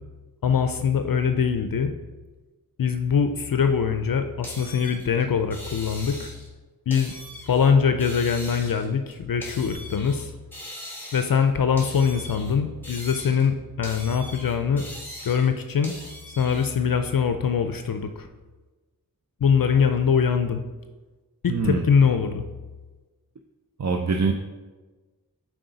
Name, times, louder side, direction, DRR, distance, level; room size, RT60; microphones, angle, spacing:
voice 1, 0.4-1.9 2.8-6.3 6.9-7.1 7.5-10.3 11.1-14.9 15.2-15.9 16.3-18.3 19.4-20.6 21.4-22.4, left 6 dB, 70° left, 8 dB, 0.5 m, -23 dB
sound 1, 4.4-6.5 6.9-7.7 8.0-10.3 10.5-11.5 11.8-13.5 13.8-16.7, left 1 dB, 5° left, 2.0 m, -41 dB
voice 2, 21.5-21.8 23.8-24.3, right 4 dB, 50° right, 4 dB, 0.5 m, -23 dB
7.7 x 4.8 x 3.9 m, 1.3 s
wide cardioid pair, 55°, 36 cm